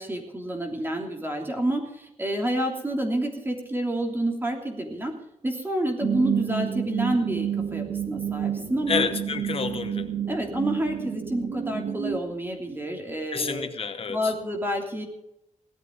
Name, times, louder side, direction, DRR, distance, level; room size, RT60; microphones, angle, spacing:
voice 1, 0.0-5.1 5.4-9.0 10.3-13.7 14.1-15.0, right 1 dB, 15° right, 2 dB, 3.1 m, -28 dB
sound 1, 6.0-12.2, right 9 dB, 85° right, 2.1 m, -30 dB
voice 2, 8.9-10.1 13.3-14.3, left 5 dB, 50° left, 8 dB, 0.9 m, -29 dB
17.5 x 12.5 x 3.9 m, 0.82 s
wide cardioid pair, 150°, 13 cm